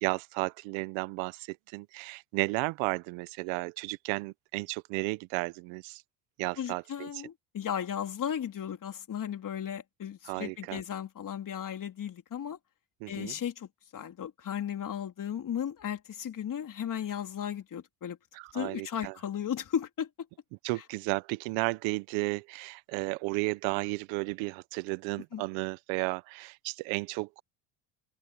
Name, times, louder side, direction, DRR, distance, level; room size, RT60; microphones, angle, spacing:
voice 1, 0.0-6.0 6.4-7.2 10.3-10.8 13.0-13.3 18.3-19.1 20.6-27.4, right 25 dB, 75° right, 1.1 m, -33 dB
voice 2, 6.6-12.6 13.1-18.2 18.5-20.1 25.3-25.4, left 9 dB, 45° left, 3.5 m, -35 dB
supercardioid pair, 90°, 46 cm